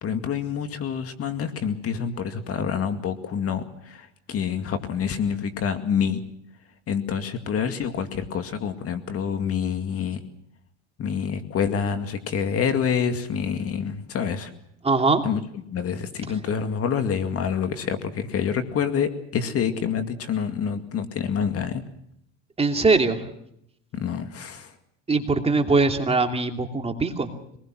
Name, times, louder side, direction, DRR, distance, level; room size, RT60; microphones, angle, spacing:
voice 1, 0.0-6.2 6.9-10.2 11.0-14.5 15.2-15.4 15.7-21.8 23.9-24.7, left 7 dB, 40° left, 8 dB, 2.3 m, -27 dB
voice 2, 14.8-15.2 22.6-23.3 25.1-27.3, right 3 dB, 15° right, 4 dB, 2.9 m, -21 dB
25.5 x 20.0 x 6.2 m, 0.74 s
supercardioid pair, 110°, 35 cm